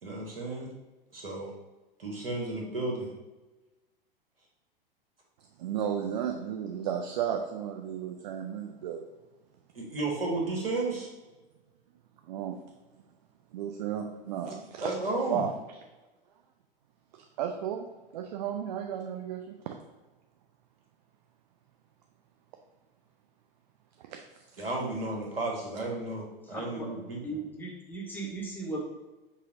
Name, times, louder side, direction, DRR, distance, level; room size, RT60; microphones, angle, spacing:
voice 1, 0.0-0.7 1.1-1.5 2.0-3.1 9.7-11.1 14.4-14.5 14.8-15.4 24.6-27.2, right 2 dB, 75° right, -1 dB, 1.2 m, -33 dB
voice 2, 5.6-9.1 12.3-12.6 13.5-15.0 15.3-15.5 17.1-17.9 18.1-19.7 24.0-24.2 24.5-24.7, right 9 dB, 45° right, 4 dB, 0.4 m, -34 dB
voice 3, 26.4-26.9 27.2-28.8, right 2 dB, 5° left, -3 dB, 0.7 m, -37 dB
5.5 x 2.1 x 3.7 m, 1.1 s
figure-of-eight pair, 95°, 29 cm